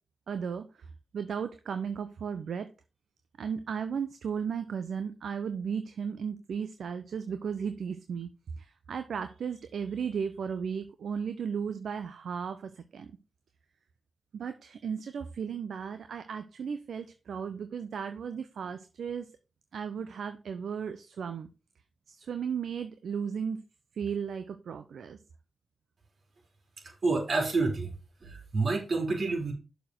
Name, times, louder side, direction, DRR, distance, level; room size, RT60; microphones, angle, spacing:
voice 1, 0.3-2.7 3.4-8.3 8.6-13.1 14.3-19.3 19.7-21.5 22.1-23.6 23.9-25.2, right 7 dB, 75° right, 10 dB, 0.6 m, -35 dB
voice 2, 26.8-27.9 28.2-29.5, right 3 dB, 60° right, 2 dB, 3.6 m, -29 dB
6.8 x 4.5 x 6.2 m, 0.31 s
supercardioid pair, 45°, 0 cm